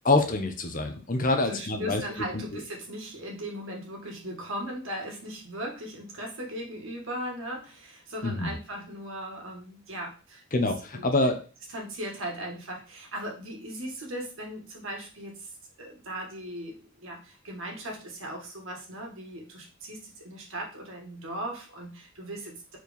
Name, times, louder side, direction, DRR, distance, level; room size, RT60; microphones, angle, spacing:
voice 1, 0.0-2.0 2.3-2.4 8.2-8.5 10.5-11.4, left 2 dB, 40° left, 5 dB, 1.0 m, -25 dB
voice 2, 1.4-11.3 11.7-15.5 15.8-22.8, right 1 dB, 70° right, 0 dB, 2.1 m, -38 dB
4.7 x 4.5 x 5.3 m, 0.36 s
head